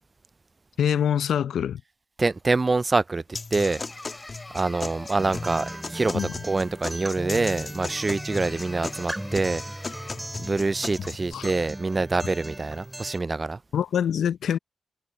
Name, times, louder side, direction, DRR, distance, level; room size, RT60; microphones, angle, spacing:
voice 1, 0.8-1.8 6.1-6.3 11.3-11.5 13.7-14.6, left 9 dB, 80° left, 0.6 m, -24 dB
voice 2, 2.2-3.2 3.5-3.8 4.5-10.1 10.4-13.6, right 3 dB, 35° right, 0.3 m, -26 dB
sound 1, 3.3-11.3, left 3 dB, 40° left, 1.8 m, -37 dB
sound 2, 3.6-6.1 7.8-10.4, left 2 dB, 25° left, 3.5 m, -45 dB
Acoustic guitar, 5.2-13.2, right 1 dB, 15° right, 3.5 m, -38 dB
supercardioid pair, 45°, 0 cm